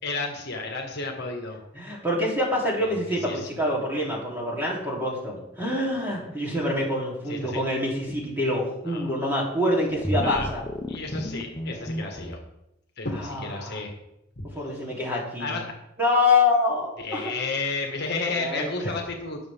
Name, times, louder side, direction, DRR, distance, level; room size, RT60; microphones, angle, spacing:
voice 1, 0.0-1.6 3.0-3.5 7.3-7.6 8.9-9.1 10.2-10.5 10.9-12.4 13.0-13.9 14.4-14.5 15.4-15.8 17.0-19.4, left 3 dB, 55° left, 2 dB, 1.7 m, -32 dB
voice 2, 1.7-10.6 13.2-13.8 14.5-15.6 16.0-17.3 18.3-18.9, left 2 dB, 10° right, -4 dB, 3.2 m, -26 dB
sound 1, 9.9-12.3, left 1 dB, 20° left, 0.9 m, -32 dB
18.5 x 6.7 x 3.6 m, 0.86 s
head